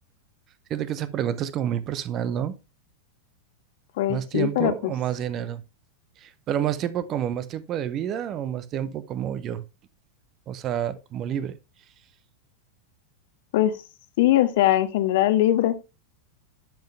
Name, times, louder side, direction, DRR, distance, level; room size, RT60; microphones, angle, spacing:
voice 1, 0.7-2.6 4.1-5.6 6.2-9.6 10.5-11.6, right 10 dB, 30° right, 0.7 m, -29 dB
voice 2, 4.0-4.9 13.5-13.8 14.2-15.8, left 13 dB, 50° left, 0.9 m, -21 dB
10.5 x 5.7 x 3.2 m
figure-of-eight pair, 90°, 0 cm